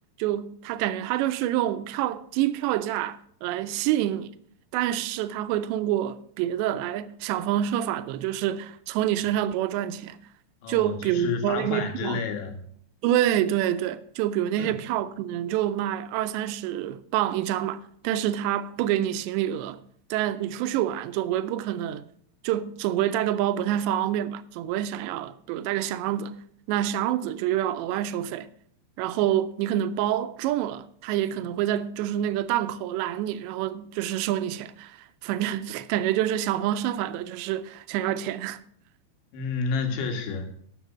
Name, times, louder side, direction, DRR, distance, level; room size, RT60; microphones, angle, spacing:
voice 1, 0.2-4.3 4.7-10.2 10.7-12.2 13.0-19.8 20.1-22.0 22.4-26.4 26.7-28.5 29.0-38.6, right 12 dB, 85° right, 2.8 m, -27 dB
voice 2, 10.6-12.6 14.6-14.8 39.3-40.5, left 5 dB, 90° left, 4.0 m, -30 dB
12.0 x 7.7 x 6.0 m
omnidirectional pair, 5.1 m